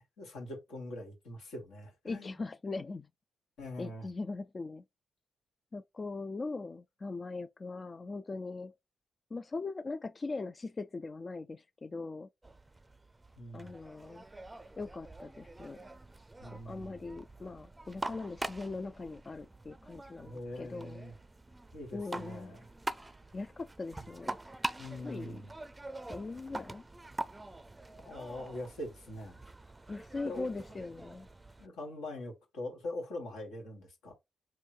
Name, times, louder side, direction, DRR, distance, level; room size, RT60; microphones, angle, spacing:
voice 1, 0.2-2.4 3.6-4.1 13.4-13.8 16.4-17.1 20.1-21.1 21.7-22.7 24.0-24.1 24.8-25.6 28.0-29.4 30.2-30.5 31.6-34.1, left 1 dB, 75° left, 1.5 m, -43 dB
voice 2, 2.1-3.1 3.8-4.8 5.7-8.7 9.3-12.3 13.5-14.3 14.8-15.8 16.5-21.0 21.9-22.6 23.3-24.5 25.0-25.5 26.1-26.8 29.9-31.3, left 3 dB, 40° left, 0.3 m, -40 dB
sound 1, 12.4-31.7, right 2 dB, 20° right, 0.5 m, -45 dB
3.5 x 2.2 x 4.4 m
hypercardioid pair, 40°, 0 cm